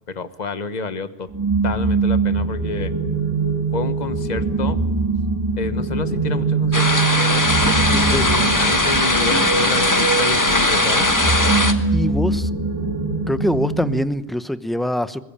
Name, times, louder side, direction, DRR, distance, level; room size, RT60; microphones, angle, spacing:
voice 1, 0.1-1.3 1.6-2.9 3.7-4.8 5.6-11.1, left 3 dB, 45° left, 13 dB, 1.3 m, -29 dB
sound 1, 1.3-14.0, right 4 dB, 15° right, 3.1 m, -22 dB
sound 2, 6.7-11.7, left 2 dB, 20° left, 1.4 m, -19 dB
sound 3, 7.5-12.3, right 1 dB, 35° right, 2.9 m, -39 dB
voice 2, 11.9-12.5 13.3-15.2, left 1 dB, ahead, 13 dB, 0.7 m, -23 dB
23.0 x 20.5 x 8.8 m, 1.0 s
omnidirectional pair, 1.1 m